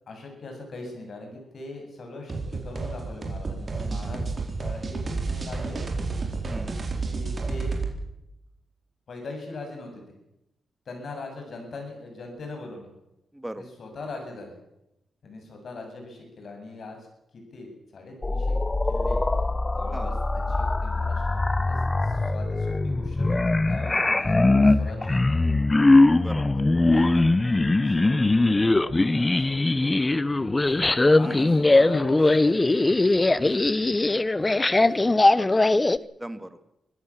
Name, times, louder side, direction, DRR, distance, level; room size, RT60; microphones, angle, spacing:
voice 1, 0.1-4.2 4.6-6.1 7.0-7.8 9.1-10.1 10.9-12.9 13.6-14.6 15.2-17.0 17.3-18.6 18.8-19.2 19.7-25.5 26.6-33.9 34.4-35.1, left 2 dB, 55° left, 3 dB, 7.9 m, -41 dB
sound 1, 2.3-7.9, right 3 dB, 35° right, 4.4 m, -30 dB
voice 2, 13.3-13.6 19.9-20.2 23.7-23.8 26.1-26.4 31.2-31.5 35.4-35.6 36.0-36.6, right 1 dB, 5° right, 11 dB, 1.8 m, -38 dB
sound 2, 18.2-36.0, left 2 dB, 20° left, 0.7 m, -21 dB
24.5 x 15.5 x 7.4 m, 0.88 s
cardioid pair, 110°, 0 cm